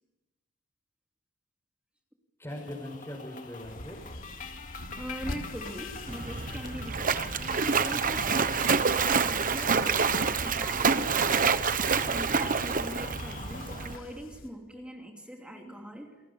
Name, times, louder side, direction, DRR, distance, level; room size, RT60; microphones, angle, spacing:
voice 1, 2.4-4.1 7.3-7.6 13.7-13.8 14.7-14.8 15.5-15.7, left 1 dB, 10° left, -3 dB, 5.8 m, -42 dB
sound 1, 2.5-14.0, left 5 dB, 40° left, 2.3 m, -45 dB
sound 2, 3.6-14.5, left 1 dB, 65° left, 3.5 m, -45 dB
voice 2, 5.0-7.3 7.8-11.6 12.1-16.2, equal, 5° right, 1 dB, 2.9 m, -42 dB
Splash splatter, 6.1-14.0, right 5 dB, 40° right, 1.0 m, -27 dB
29.0 x 23.0 x 7.2 m, 1.1 s
head